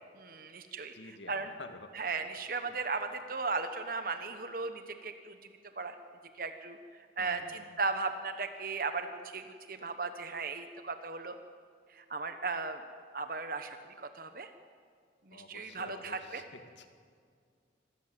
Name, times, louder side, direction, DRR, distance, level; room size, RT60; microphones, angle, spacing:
voice 1, 0.1-1.5 1.9-5.4 5.8-6.0 6.4-6.8 7.2-9.1 9.3-11.3 11.9-12.8 13.1-14.5 15.3-16.5, right 4 dB, 50° right, 8 dB, 1.1 m, -36 dB
voice 2, 0.9-2.1 2.7-2.8 7.2-7.5 15.3-16.9, left 2 dB, 90° left, 7 dB, 1.9 m, -50 dB
25.5 x 13.5 x 9.3 m, 2.2 s
head